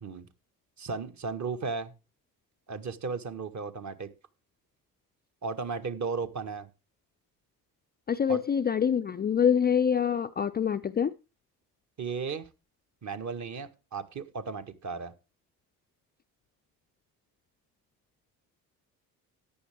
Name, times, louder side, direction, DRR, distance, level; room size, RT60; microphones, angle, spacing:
voice 1, 0.8-1.9 2.7-4.1 5.4-6.7 8.3-8.4 12.0-12.5 13.0-15.1, right 4 dB, 35° right, 1.6 m, -35 dB
voice 2, 8.1-11.1, left 7 dB, 20° left, 0.5 m, -25 dB
14.0 x 10.0 x 3.6 m
figure-of-eight pair, 50°, 49 cm